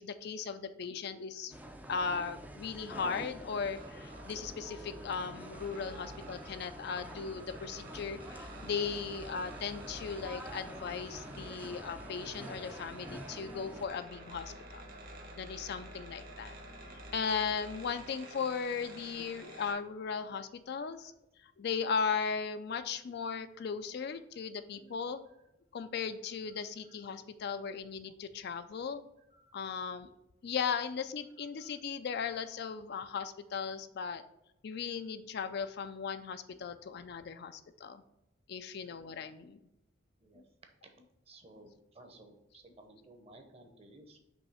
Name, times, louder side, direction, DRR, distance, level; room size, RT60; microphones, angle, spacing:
voice 1, 0.0-1.5 1.9-14.8 15.4-16.5 16.9-21.1 21.6-25.2 25.7-29.0 29.5-30.1 30.4-34.2 34.6-38.0 38.5-39.6 40.3-40.4 41.6-41.7, left 6 dB, 55° left, 10 dB, 0.4 m, -37 dB
sound 1, 1.5-13.9, right 1 dB, 10° right, 0.4 m, -48 dB
sound 2, 3.7-19.7, right 1 dB, 50° right, 1.2 m, -50 dB
voice 2, 18.8-19.4 21.0-21.1 25.3-25.4 26.4-26.6 27.0-27.1 29.3-29.6 29.9-30.0 31.4-31.8 35.0-35.1 40.2-40.5 41.2-44.2, right 2 dB, 30° right, 4 dB, 0.8 m, -58 dB
5.3 x 3.2 x 5.5 m, 0.86 s
head